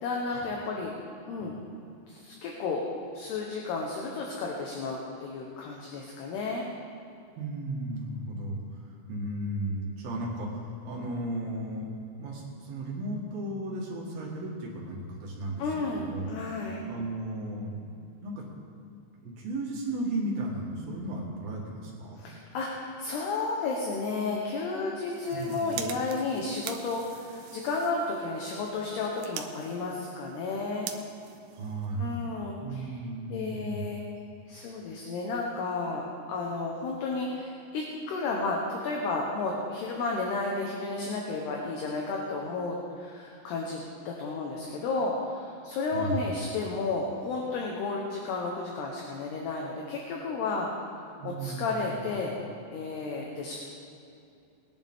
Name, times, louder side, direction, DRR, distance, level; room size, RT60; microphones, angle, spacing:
voice 1, 0.0-0.9 1.3-1.5 2.1-2.8 3.1-6.7 15.6-16.8 22.2-30.9 32.0-33.0 33.3-34.0 34.5-50.7 51.2-52.4 52.7-53.6, left 3 dB, 70° left, -1 dB, 2.9 m, -32 dB
voice 2, 7.4-11.9 12.2-16.4 16.9-17.9 18.2-18.4 19.2-22.2 25.3-25.9 31.5-32.3 32.6-33.8 45.9-46.3 51.2-52.0, right 1 dB, 60° right, -3 dB, 3.3 m, -35 dB
sound 1, 25.0-32.3, right 9 dB, 85° right, 2.9 m, -44 dB
20.5 x 11.0 x 3.7 m, 2.6 s
omnidirectional pair, 5.5 m